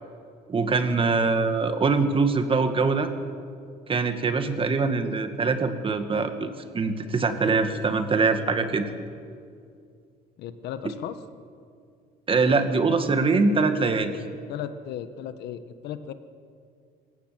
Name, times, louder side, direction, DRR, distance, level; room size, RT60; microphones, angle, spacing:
voice 1, 0.5-3.1 3.9-8.9 12.3-14.1, right 4 dB, 30° right, 8 dB, 1.9 m, -23 dB
voice 2, 10.4-11.2 14.5-16.1, left 9 dB, 80° left, 11 dB, 1.3 m, -35 dB
26.0 x 16.0 x 7.6 m, 2.3 s
cardioid pair, 110°, 17 cm